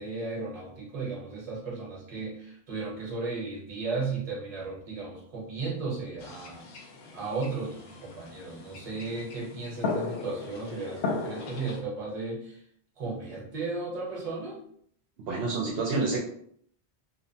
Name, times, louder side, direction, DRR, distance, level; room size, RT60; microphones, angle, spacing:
voice 1, 0.0-6.6 7.1-12.6 13.0-14.6, right 3 dB, 40° right, -4 dB, 0.9 m, -35 dB
sound 1, 6.2-11.8, left 4 dB, 75° left, 0.8 m, -37 dB
voice 2, 15.3-16.2, right 3 dB, 70° right, -2 dB, 0.8 m, -28 dB
2.7 x 2.1 x 2.6 m, 0.65 s
omnidirectional pair, 1.1 m